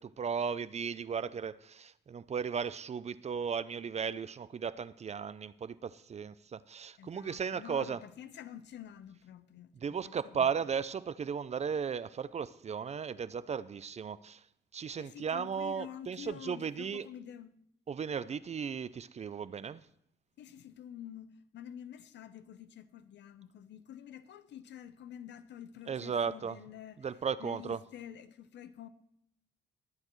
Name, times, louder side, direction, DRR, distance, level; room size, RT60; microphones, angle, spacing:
voice 1, 0.0-8.0 9.8-14.4 14.7-17.1 17.9-19.8 25.9-26.6 27.0-27.8, right 6 dB, 35° right, 0.5 m, -36 dB
voice 2, 7.0-10.5 15.0-17.6 20.4-28.9, left 10 dB, 75° left, 0.8 m, -48 dB
21.5 x 8.8 x 3.1 m
cardioid pair, 90°, 18 cm